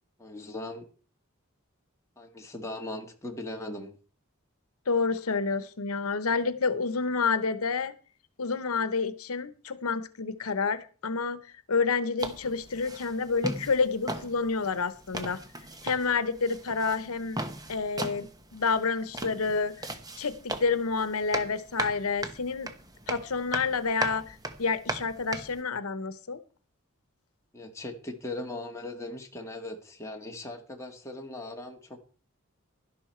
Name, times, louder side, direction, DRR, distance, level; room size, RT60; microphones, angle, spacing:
voice 1, 0.2-0.9 2.2-4.0 27.5-32.0, left 2 dB, 15° left, 2 dB, 1.6 m, -39 dB
voice 2, 4.9-7.9 8.4-11.4 11.7-15.4 15.8-17.4 17.7-19.9 20.2-22.7 23.1-26.4, left 4 dB, 90° left, 13 dB, 0.9 m, -29 dB
sound 1, 12.2-25.6, right 2 dB, 15° right, 1.1 m, -38 dB
11.5 x 11.5 x 4.5 m, 0.39 s
head